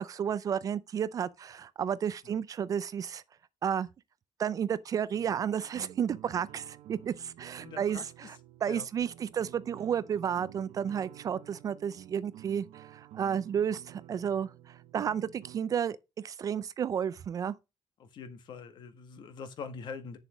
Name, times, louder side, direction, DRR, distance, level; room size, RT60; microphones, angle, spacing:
voice 1, 0.0-3.2 3.6-3.9 4.4-8.4 8.6-16.0 16.2-17.5, right 8 dB, 35° right, 0.5 m, -32 dB
sound 1, 5.1-15.6, right 13 dB, 70° right, 0.9 m, -51 dB
voice 2, 7.6-8.3 8.7-8.9 18.0-20.2, left 5 dB, 50° left, 1.6 m, -44 dB
8.2 x 7.0 x 5.0 m
cardioid pair, 175°, 10 cm